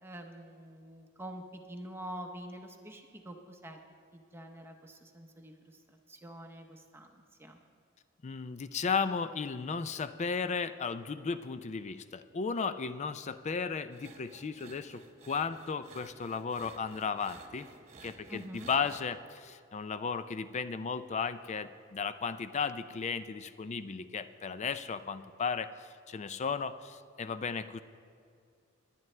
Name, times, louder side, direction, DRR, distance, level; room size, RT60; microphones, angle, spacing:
voice 1, 0.0-3.8 4.1-7.6 18.3-18.7, right 1 dB, 10° right, 3 dB, 0.7 m, -46 dB
voice 2, 8.2-17.7 18.0-27.8, left 5 dB, 35° left, 12 dB, 0.4 m, -35 dB
sound 1, 13.9-19.0, right 4 dB, 35° right, 1.1 m, -54 dB
21.5 x 9.2 x 3.3 m, 2.3 s
head